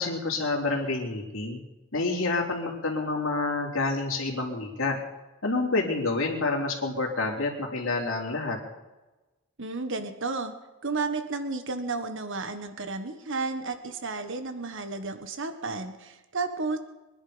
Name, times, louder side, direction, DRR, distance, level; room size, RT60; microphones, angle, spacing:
voice 1, 0.0-1.6 1.9-5.0 5.4-8.6, left 3 dB, 60° left, -1 dB, 3.4 m, -28 dB
voice 2, 9.6-10.5 10.8-16.8, right 3 dB, 55° right, 8 dB, 1.4 m, -32 dB
24.0 x 10.5 x 5.2 m, 1.1 s
head